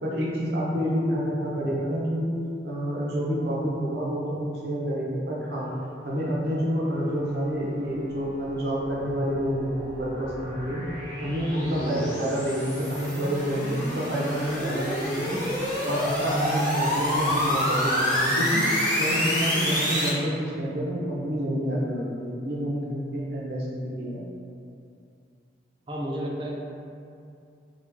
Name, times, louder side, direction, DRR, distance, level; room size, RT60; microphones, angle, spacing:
voice 1, 0.0-2.3 2.6-5.7 6.0-10.8 11.2-15.4 15.8-24.2, equal, 65° right, -5 dB, 0.7 m, -28 dB
Wind instrument woodwind instrument, 5.5-14.9, left 4 dB, 75° left, 1.0 m, -45 dB
sound 1, 9.0-20.1, equal, 30° left, 1.1 m, -28 dB
voice 2, 11.6-12.1 25.9-26.5, equal, 25° right, -2 dB, 0.3 m, -32 dB
3.4 x 2.4 x 3.0 m, 2.5 s
head